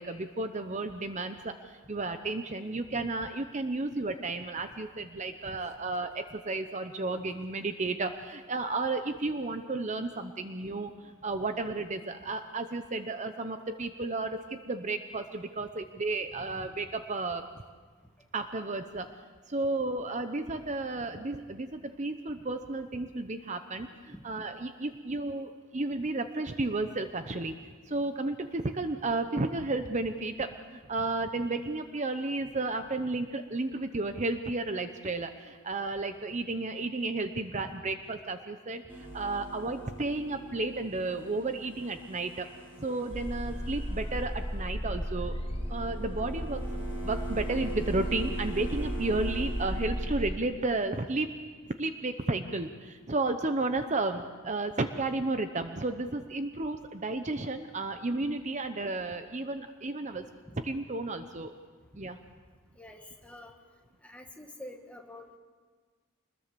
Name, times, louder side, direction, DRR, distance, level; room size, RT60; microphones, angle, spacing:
voice 1, 0.0-17.5 18.3-19.1 19.5-27.5 27.9-42.5 42.8-45.4 45.7-46.6 47.0-51.4 51.8-60.2 60.6-61.5 61.9-62.2, right 2 dB, 35° right, 8 dB, 0.8 m, -33 dB
voice 2, 16.4-16.7 24.1-24.2 37.6-37.7 60.5-60.6 62.0-62.1 62.8-63.5 64.0-65.4, left 1 dB, 5° left, 2 dB, 1.9 m, -47 dB
sound 1, 38.9-50.2, right 2 dB, 10° right, 6.5 m, -44 dB
sound 2, 43.1-50.4, equal, 30° left, 1.5 m, -35 dB
25.0 x 21.0 x 6.9 m, 1.5 s
head